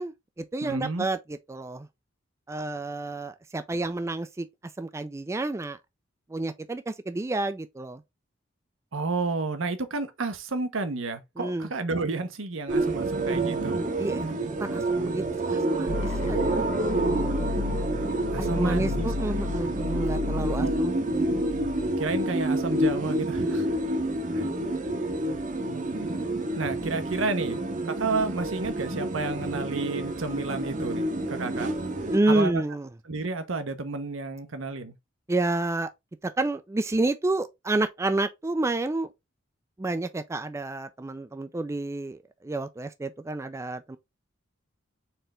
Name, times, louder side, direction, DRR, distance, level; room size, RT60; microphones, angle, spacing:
voice 1, 0.0-1.9 2.5-4.5 4.8-5.8 6.3-8.0 11.4-11.7 14.0-14.3 14.6-15.2 15.5-16.7 18.4-21.0 32.1-32.9 35.3-35.9 36.2-39.1 39.8-44.0, right 2 dB, 15° right, 0.3 m, -29 dB
voice 2, 0.6-1.1 8.9-13.8 18.3-19.1 20.6-20.8 21.1-21.2 22.0-23.7 24.3-24.5 26.5-31.7 32.3-32.6 33.0-34.9, right 3 dB, 80° right, 0.9 m, -31 dB
sound 1, 12.7-32.2, right 1 dB, 40° right, 0.8 m, -28 dB
sound 2, 15.9-21.9, left 4 dB, 85° left, 1.1 m, -33 dB
4.3 x 3.3 x 3.6 m
head